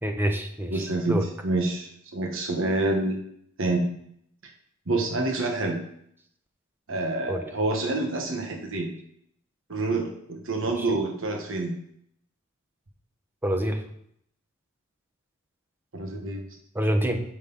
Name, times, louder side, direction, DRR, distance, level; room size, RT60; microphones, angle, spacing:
voice 1, 0.0-0.7 1.1-1.2 7.3-7.4 10.6-11.0 13.4-13.8 16.7-17.2, right 1 dB, 10° right, 5 dB, 0.9 m, -26 dB
voice 2, 0.7-3.2 3.6-3.9 4.9-5.8 6.9-9.0 9.7-11.8 15.9-16.4, right 2 dB, 65° right, 2 dB, 1.3 m, -27 dB
9.2 x 6.6 x 4.0 m, 0.69 s
head